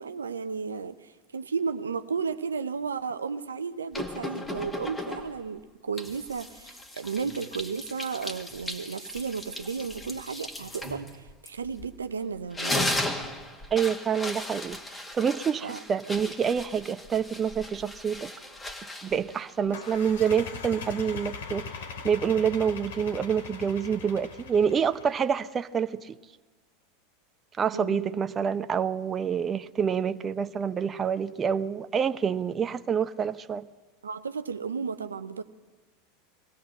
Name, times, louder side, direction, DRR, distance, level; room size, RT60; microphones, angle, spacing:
voice 1, 0.0-13.0 15.6-15.8 19.6-19.8 27.7-28.2 34.0-35.4, right 5 dB, 85° right, 0.8 m, -34 dB
sound 1, 3.9-5.5 6.0-12.0 12.4-20.2, left 1 dB, 15° left, 2.1 m, -36 dB
voice 2, 13.7-18.3 19.0-26.2 27.6-33.7, right 7 dB, 25° right, 0.7 m, -27 dB
sound 2, 19.7-25.2, left 5 dB, 70° left, 2.6 m, -40 dB
21.5 x 16.5 x 7.8 m
hypercardioid pair, 90°, 0 cm